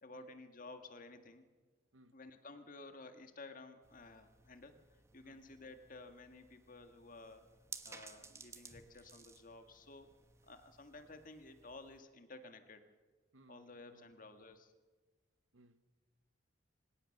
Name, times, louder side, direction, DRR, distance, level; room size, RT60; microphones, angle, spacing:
voice 1, 0.0-1.5 2.1-4.8 5.1-7.5 7.9-10.1 10.4-12.8 13.5-14.7, left 3 dB, 45° left, 1.8 m, -54 dB
sound 1, 3.8-12.0, right 4 dB, 15° right, 1.1 m, -57 dB
voice 2, 13.3-14.1 15.5-16.0, right 1 dB, 90° right, 1.2 m, -65 dB
25.5 x 17.5 x 6.6 m
head